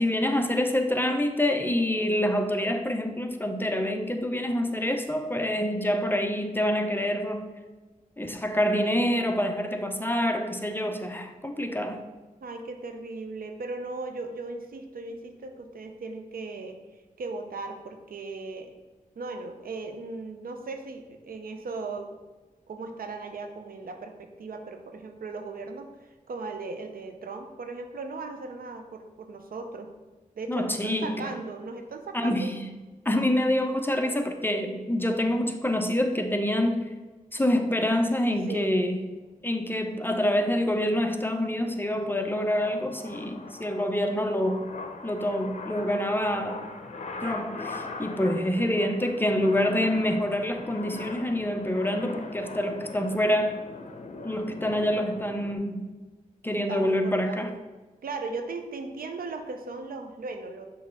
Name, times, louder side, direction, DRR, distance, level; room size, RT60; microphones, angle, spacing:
voice 1, 0.0-7.5 8.2-12.0 30.5-31.4 32.1-32.7 33.1-36.9 37.3-39.0 39.4-44.7 45.0-46.7 47.2-53.6 54.2-55.9 56.4-57.5, left 1 dB, 15° left, 6 dB, 0.6 m, -26 dB
voice 2, 12.4-16.8 17.2-18.7 19.2-22.2 22.7-25.9 26.3-29.9 30.4-32.5 38.5-38.8 56.5-57.6 58.0-60.7, right 3 dB, 80° right, 5 dB, 0.6 m, -37 dB
sound 1, 40.4-55.6, left 3 dB, 50° left, 0.7 m, -41 dB
6.3 x 3.1 x 5.3 m, 1.2 s
cardioid pair, 60°, 15 cm